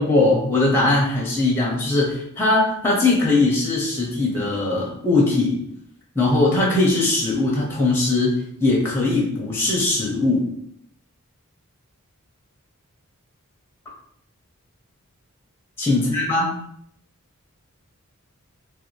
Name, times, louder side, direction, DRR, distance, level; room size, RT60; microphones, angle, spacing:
voice 1, 0.0-5.6 6.1-10.5 15.8-16.5, left 2 dB, 10° left, -4 dB, 0.6 m, -20 dB
2.5 x 2.2 x 3.0 m, 0.70 s
head